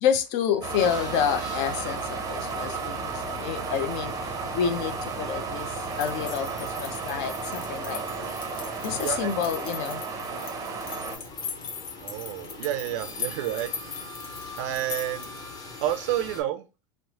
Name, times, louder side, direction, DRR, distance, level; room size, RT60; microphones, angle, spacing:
voice 1, 0.0-8.4 8.8-10.0, left 8 dB, 55° left, 0.5 m, -29 dB
sound 1, 0.6-11.2, right 5 dB, 20° right, 0.5 m, -33 dB
sound 2, 0.8-16.4, left 2 dB, 20° left, 0.7 m, -44 dB
sound 3, 5.9-15.5, left 6 dB, 90° left, 0.8 m, -39 dB
voice 2, 9.0-9.3 12.0-13.7 14.6-15.3 15.8-16.7, right 12 dB, 65° right, 0.5 m, -29 dB
3.2 x 2.0 x 2.8 m
supercardioid pair, 120°, 17 cm